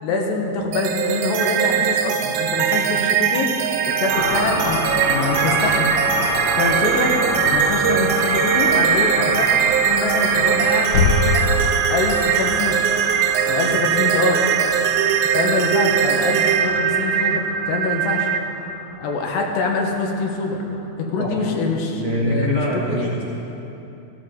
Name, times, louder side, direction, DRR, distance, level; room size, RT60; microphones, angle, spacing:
voice 1, 0.0-3.5 3.9-6.0 6.5-7.2 7.5-9.5 9.8-11.0 11.9-12.8 13.5-14.5 15.3-18.3 19.0-20.6 21.0-22.6 22.9-23.1, left 3 dB, 90° left, 1 dB, 3.5 m, -24 dB
sound 1, 0.7-18.4, right 8 dB, 80° right, 2.2 m, -20 dB
sound 2, 4.1-20.4, left 2 dB, 50° left, 2.2 m, -30 dB
sound 3, 7.4-15.2, left 4 dB, 70° left, 2.0 m, -27 dB
voice 2, 22.0-23.2, right 1 dB, 55° right, -4 dB, 2.1 m, -24 dB
14.5 x 14.5 x 3.9 m, 2.9 s
omnidirectional pair, 4.7 m